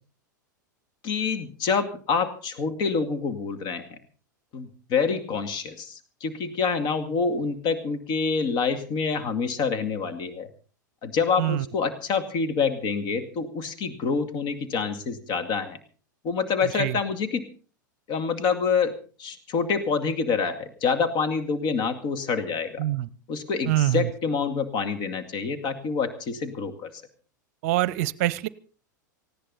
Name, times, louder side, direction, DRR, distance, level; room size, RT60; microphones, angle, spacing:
voice 1, 1.0-4.0 4.5-10.5 11.0-15.8 16.2-17.4 18.1-22.9 23.3-26.9, left 5 dB, 45° left, 9 dB, 2.2 m, -27 dB
voice 2, 16.6-17.0 22.8-23.1 23.7-24.1 27.6-28.5, right 15 dB, 50° right, 20 dB, 0.7 m, -25 dB
19.0 x 16.0 x 4.1 m, 0.39 s
figure-of-eight pair, 90°, 10 cm